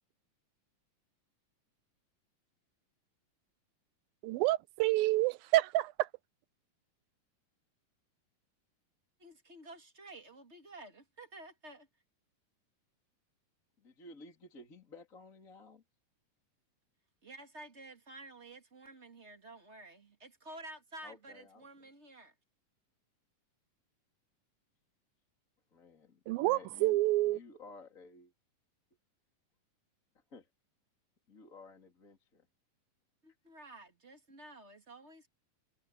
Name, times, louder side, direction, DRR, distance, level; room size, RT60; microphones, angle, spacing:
voice 1, 4.2-6.1 26.3-27.4, right 17 dB, 90° right, 2.4 m, -28 dB
voice 2, 9.2-11.9 17.2-22.3 33.2-35.3, right 2 dB, 25° right, 2.0 m, -51 dB
voice 3, 13.8-15.8 21.0-21.7 25.7-27.0 27.2-28.3 30.3-30.5 31.3-32.5, left 3 dB, 25° left, 3.4 m, -54 dB
omnidirectional pair, 4.1 m